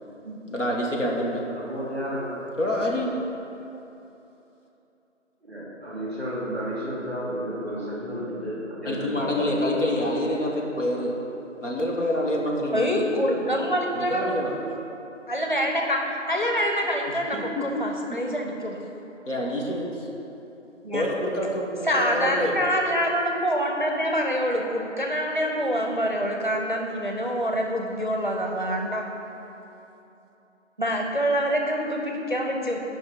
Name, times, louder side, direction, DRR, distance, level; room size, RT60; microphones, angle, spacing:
voice 1, 0.5-1.4 2.6-3.2 8.9-11.1 11.6-13.1 13.9-14.6 17.3-17.8 19.3-19.8 20.9-22.5, left 1 dB, 70° left, -3 dB, 1.7 m, -27 dB
voice 2, 1.5-2.5 5.4-9.9 10.5-10.6 13.3-13.5, equal, 10° left, -7 dB, 1.8 m, -32 dB
voice 3, 12.7-14.4 15.3-18.8 20.8-21.1 21.8-29.0 30.8-32.8, equal, 40° right, 1 dB, 0.7 m, -26 dB
8.6 x 5.3 x 5.4 m, 3.0 s
figure-of-eight pair, 170°, 38 cm